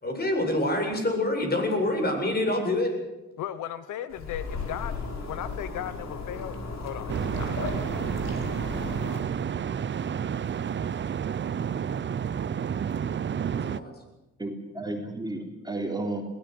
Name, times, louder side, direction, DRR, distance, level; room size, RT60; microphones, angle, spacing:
voice 1, 0.0-2.9 13.5-13.9, left 1 dB, 30° left, 3 dB, 7.8 m, -26 dB
voice 2, 3.4-5.0 5.3-7.2, left 11 dB, 80° left, 14 dB, 1.1 m, -36 dB
sound 1, 4.1-9.2, left 4 dB, 60° left, 4.7 m, -35 dB
sound 2, 7.1-13.8, right 8 dB, 40° right, 0.7 m, -30 dB
voice 3, 14.4-16.2, right 2 dB, 15° right, 2 dB, 3.7 m, -32 dB
21.5 x 18.0 x 8.0 m, 1.0 s
cardioid pair, 90°, 30 cm